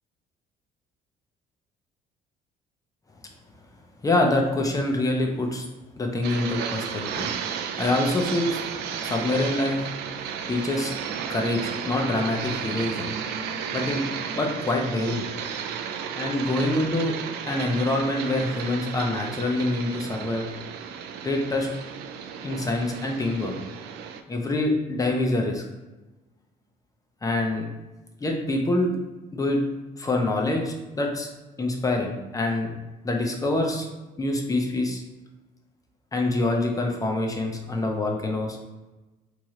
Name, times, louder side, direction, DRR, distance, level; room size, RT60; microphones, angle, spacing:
voice 1, 4.0-5.6 6.0-7.3 7.8-8.6 9.0-9.8 10.5-10.9 11.3-11.6 11.8-13.1 13.7-14.0 14.3-15.2 16.1-17.1 17.5-20.5 21.2-21.7 22.4-23.5 24.3-25.6 27.2-27.7 28.2-28.9 29.3-29.6 30.0-31.3 31.6-32.7 33.0-33.9 34.2-35.0 36.1-38.6, left 2 dB, 20° left, 1 dB, 0.7 m, -25 dB
sound 1, 6.2-24.2, right 7 dB, 80° right, 0.4 m, -33 dB
3.1 x 2.9 x 3.7 m, 1.1 s
cardioid pair, 110°, 17 cm